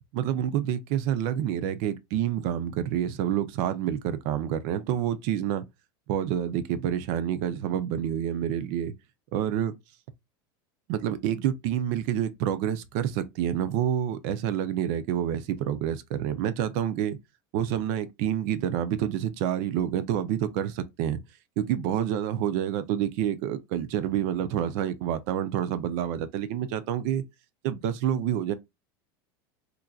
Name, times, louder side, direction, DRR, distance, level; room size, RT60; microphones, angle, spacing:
voice 1, 0.1-5.7 6.1-8.9 9.3-9.7 10.9-17.2 17.5-21.2 21.6-27.2 27.6-28.5, right 10 dB, 50° right, 0.5 m, -28 dB
4.4 x 2.5 x 2.3 m
supercardioid pair, 165°, 12 cm